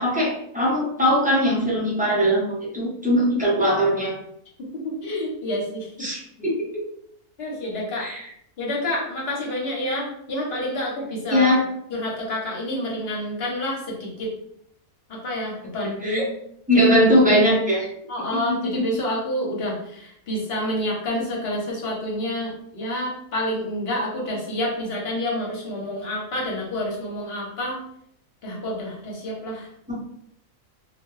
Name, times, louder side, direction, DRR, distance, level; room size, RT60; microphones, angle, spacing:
voice 1, 0.0-2.5 2.7-4.2 6.0-6.8 8.0-8.3 11.3-11.6 16.0-16.2 16.7-17.9 18.3-18.9 29.9-30.0, equal, 10° right, -6 dB, 0.5 m, -20 dB
voice 2, 4.8-5.9 7.4-8.1 8.6-11.5 11.9-14.3 15.1-16.3 16.7-17.0 18.1-27.8 28.4-29.7, left 1 dB, 50° left, -2 dB, 0.9 m, -28 dB
2.5 x 2.2 x 3.1 m, 0.71 s
omnidirectional pair, 1.5 m